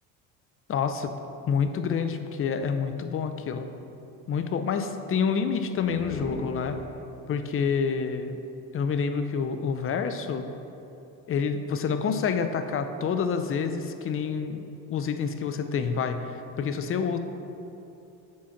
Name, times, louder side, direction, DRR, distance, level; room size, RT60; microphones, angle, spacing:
voice 1, 0.7-1.1 1.5-3.7 4.3-6.8 7.3-8.4 8.7-10.5 11.3-14.6 14.9-17.2, left 6 dB, 40° left, 8 dB, 0.6 m, -28 dB
sound 1, 5.8-7.3, left 1 dB, 15° left, 1.4 m, -39 dB
7.5 x 4.3 x 5.8 m, 2.9 s
supercardioid pair, 90°, 34 cm